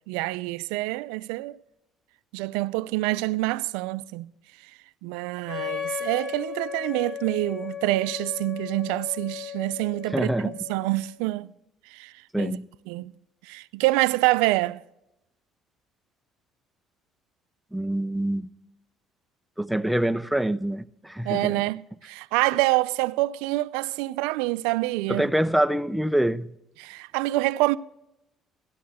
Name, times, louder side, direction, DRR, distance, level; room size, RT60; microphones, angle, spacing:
voice 1, 0.1-1.6 2.3-4.3 5.0-11.5 11.9-12.6 12.9-13.1 13.4-14.8 21.2-25.3 26.8-27.8, right 20 dB, 90° right, 0.3 m, -26 dB
Wind instrument woodwind instrument, 5.5-11.1, left 9 dB, 15° left, 3.9 m, -36 dB
voice 2, 10.1-10.6 12.3-12.7 17.7-18.5 19.6-21.6 25.1-26.5, right 1 dB, ahead, 0.5 m, -25 dB
13.5 x 11.5 x 3.5 m
supercardioid pair, 85°, 0 cm